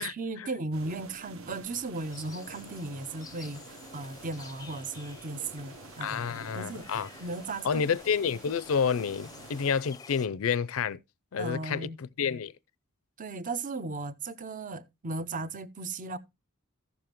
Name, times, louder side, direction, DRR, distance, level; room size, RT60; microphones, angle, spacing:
voice 1, 0.0-7.9 11.4-12.0 13.2-16.2, right 3 dB, 40° right, 0.6 m, -36 dB
sound 1, 0.7-9.7, right 3 dB, 70° right, 1.0 m, -49 dB
sound 2, 1.9-10.3, left 4 dB, 15° left, 0.5 m, -50 dB
voice 2, 6.0-7.1 7.6-11.0 11.3-12.5, left 6 dB, 75° left, 0.5 m, -29 dB
14.5 x 7.0 x 2.9 m
head